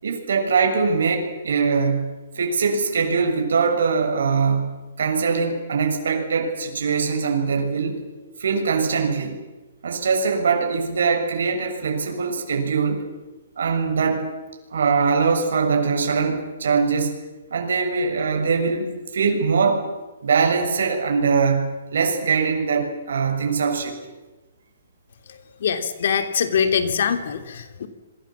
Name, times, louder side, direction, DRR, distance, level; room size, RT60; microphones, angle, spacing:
voice 1, 0.0-8.0 8.4-9.4 9.8-13.0 13.6-14.2 14.7-17.2 17.5-19.9 20.2-24.0, right 5 dB, 70° right, 3 dB, 6.9 m, -22 dB
voice 2, 25.3-27.9, left 7 dB, 55° left, 8 dB, 3.0 m, -23 dB
28.0 x 23.0 x 7.4 m, 1.1 s
hypercardioid pair, 170°, 0 cm